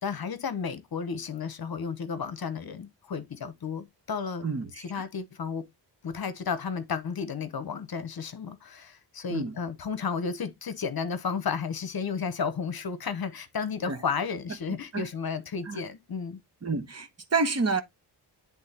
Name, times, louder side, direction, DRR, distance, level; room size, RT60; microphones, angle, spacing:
voice 1, 0.0-4.5 4.8-5.7 6.0-16.4, left 6 dB, 55° left, 0.9 m, -33 dB
voice 2, 4.4-4.8 9.3-9.5 13.9-14.0 14.9-15.0 15.7-15.8 16.6-17.8, right 4 dB, 35° right, 1.1 m, -28 dB
10.0 x 3.6 x 2.8 m
wide cardioid pair, 165°, 43 cm